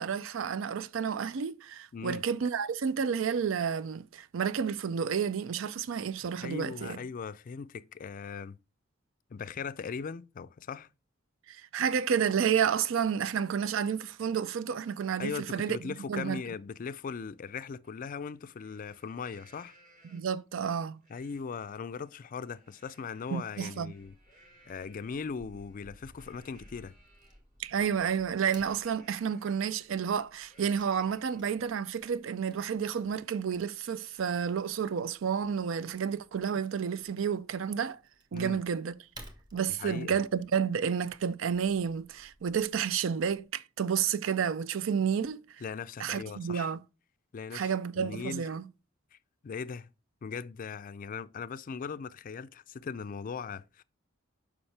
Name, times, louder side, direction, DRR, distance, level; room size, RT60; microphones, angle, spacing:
voice 1, 0.0-7.0 11.5-16.4 20.0-21.0 23.3-23.9 27.6-38.0 38.3-38.9 39.5-45.4 46.0-46.8 47.5-48.7, right 7 dB, 70° right, 0.4 m, -30 dB
voice 2, 1.9-2.2 6.4-8.6 9.3-10.9 15.2-19.7 21.1-24.1 24.7-26.9 38.3-38.6 39.7-40.2 45.6-46.7 47.3-48.5 49.4-49.9 50.2-53.8, left 5 dB, 40° left, 0.4 m, -39 dB
Livestock farm animals working animals, 17.8-17.9 18.3-20.4 21.0-21.4 21.8-27.4 28.5-31.6 32.0-32.1 32.5-34.8, right 1 dB, 45° right, 2.7 m, -63 dB
Wood / Tearing, 23.8-43.4, equal, 20° right, 1.5 m, -58 dB
7.2 x 5.5 x 3.3 m
head